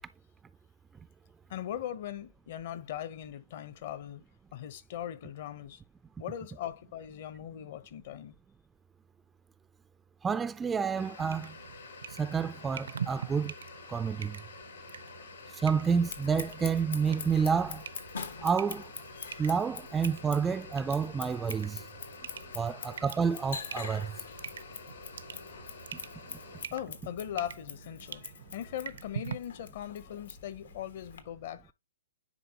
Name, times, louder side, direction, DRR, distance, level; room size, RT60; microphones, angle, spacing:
voice 1, 1.5-4.2 4.5-5.8 6.2-8.3 15.0-15.2 22.7-23.0 24.1-24.3 24.6-24.9 26.7-31.7, left 11 dB, 55° left, 0.8 m, -40 dB
voice 2, 10.2-11.6 12.2-13.5 13.9-14.4 15.6-17.8 18.4-18.9 19.4-21.9 22.5-24.1 26.3-26.4, right 6 dB, 10° right, 0.3 m, -29 dB
sound 1, 11.0-26.6, left 4 dB, 70° left, 3.8 m, -49 dB
sound 2, 11.2-29.3, right 7 dB, 80° right, 0.6 m, -45 dB
Scissors, 15.9-31.2, left 6 dB, 85° left, 1.3 m, -45 dB
10.0 x 3.9 x 2.9 m
hypercardioid pair, 145°, 0 cm